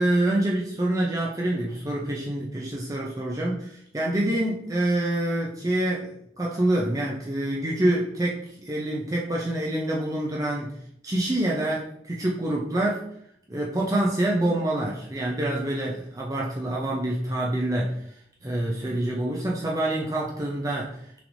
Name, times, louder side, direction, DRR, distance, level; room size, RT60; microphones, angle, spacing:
voice 1, 0.0-10.7 11.0-13.1 13.5-18.0 18.4-21.0, right 1 dB, 20° right, -3 dB, 0.5 m, -26 dB
6.0 x 3.3 x 2.6 m, 0.70 s
head